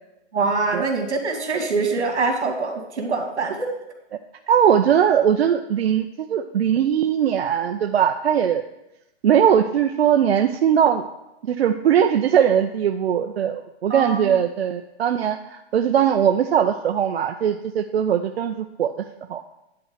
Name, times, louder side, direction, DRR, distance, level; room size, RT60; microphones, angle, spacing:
voice 1, 0.3-3.7 13.9-14.4, right 3 dB, 85° right, 4 dB, 2.4 m, -24 dB
voice 2, 4.5-8.6 9.2-11.0 11.4-18.9 19.3-19.4, right 9 dB, 65° right, 6 dB, 0.6 m, -20 dB
10.0 x 4.2 x 7.1 m, 0.91 s
hypercardioid pair, 165°, 33 cm